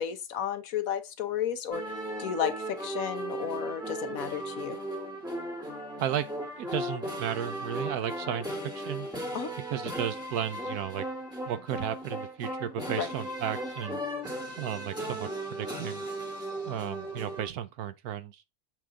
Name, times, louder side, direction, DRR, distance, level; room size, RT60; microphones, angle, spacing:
voice 1, 0.0-1.8 2.2-4.8 9.3-9.5 13.0-13.1, left 9 dB, 70° left, 1.3 m, -32 dB
sound 1, 1.7-17.5, right 1 dB, 5° right, 2.3 m, -36 dB
voice 2, 6.6-9.1 9.7-11.1 11.5-14.0 14.6-16.1 16.7-18.4, right 10 dB, 85° right, 1.3 m, -34 dB
7.5 x 3.9 x 3.6 m
omnidirectional pair, 1.6 m